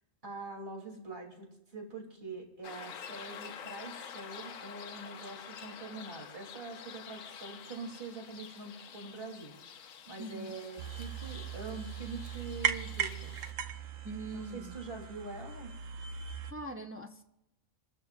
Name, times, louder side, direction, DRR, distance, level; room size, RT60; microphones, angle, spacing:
voice 1, 0.2-13.5 14.3-15.7, right 3 dB, 45° right, 1 dB, 2.9 m, -44 dB
sound 1, 2.6-13.5, left 7 dB, 85° left, 1.2 m, -48 dB
voice 2, 10.2-10.5 14.0-14.7 16.4-17.2, right 2 dB, 20° right, 4 dB, 0.4 m, -42 dB
sound 2, 10.8-16.5, right 8 dB, 85° right, 1.2 m, -38 dB
28.5 x 13.5 x 2.4 m, 0.89 s
omnidirectional pair, 1.3 m